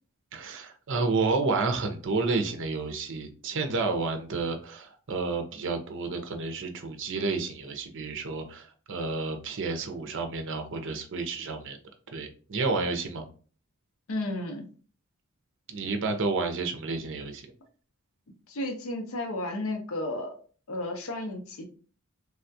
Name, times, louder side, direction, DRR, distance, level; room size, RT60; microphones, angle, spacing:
voice 1, 0.3-11.8 12.1-13.3 15.7-17.5, right 3 dB, 55° right, 5 dB, 0.6 m, -30 dB
voice 2, 14.1-14.7 18.5-20.4 20.7-21.7, left 1 dB, 65° left, 3 dB, 0.6 m, -33 dB
3.4 x 2.3 x 2.6 m, 0.40 s
head